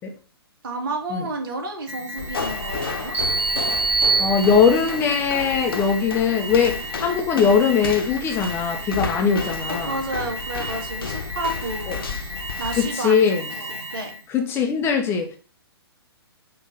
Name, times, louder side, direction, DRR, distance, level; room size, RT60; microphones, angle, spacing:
voice 1, 0.6-3.2 4.2-4.3 9.7-12.2 12.6-14.1, right 2 dB, 55° right, 2.3 m, -31 dB
Alarm, 1.9-14.3, equal, 85° right, 1.7 m, -34 dB
sound 1, 2.2-12.9, left 6 dB, 60° left, 1.0 m, -33 dB
sound 2, 3.1-5.0, right 3 dB, 15° right, 3.4 m, -23 dB
voice 2, 4.2-9.9 11.9-12.0 12.7-13.4 14.3-15.4, left 6 dB, 15° left, 0.8 m, -20 dB
6.2 x 3.3 x 5.4 m
figure-of-eight pair, 125°, 13 cm